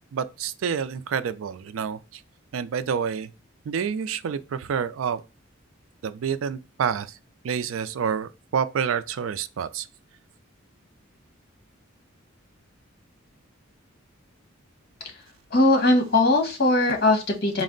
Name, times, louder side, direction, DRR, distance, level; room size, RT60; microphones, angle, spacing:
voice 1, 0.1-2.2 2.5-3.3 3.7-5.2 6.0-7.2 7.4-9.9, right 7 dB, 75° right, 0.4 m, -28 dB
voice 2, 15.5-17.6, left 2 dB, 50° left, 1.1 m, -20 dB
4.2 x 2.1 x 3.7 m
head